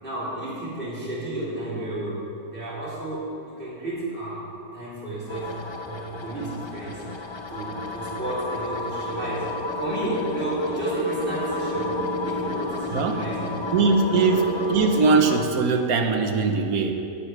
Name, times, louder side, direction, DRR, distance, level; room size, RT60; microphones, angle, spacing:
voice 1, 0.0-4.5 4.7-5.6 5.8-7.0 7.5-13.8 14.2-14.3, right 1 dB, 35° right, -8 dB, 3.4 m, -32 dB
Alien Reality warping machine, 5.3-15.4, left 1 dB, 25° left, 0.6 m, -31 dB
voice 2, 13.7-16.9, right 4 dB, 85° right, 5 dB, 1.4 m, -21 dB
19.0 x 10.0 x 3.3 m, 2.7 s
omnidirectional pair, 1.5 m